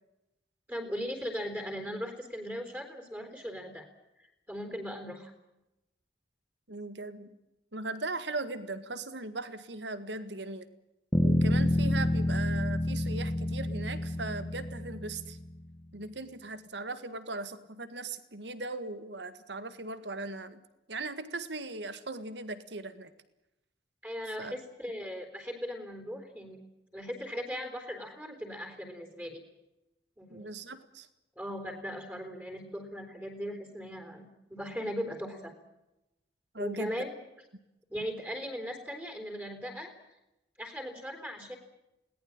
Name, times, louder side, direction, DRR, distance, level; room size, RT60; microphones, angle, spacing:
voice 1, 0.7-3.9 4.2-5.3 24.0-26.6 26.9-29.4 30.2-30.5 31.4-35.5 36.6-37.1 37.9-39.9 40.6-41.6, equal, 10° right, 6 dB, 3.9 m, -38 dB
voice 2, 6.7-7.4 7.7-10.7 11.2-15.4 15.9-23.1 24.4-24.6 30.3-31.1 36.5-36.9, right 3 dB, 75° right, 13 dB, 1.8 m, -39 dB
Bass guitar, 11.1-15.5, left 1 dB, 15° left, 1.5 m, -28 dB
21.5 x 19.0 x 8.9 m, 0.90 s
head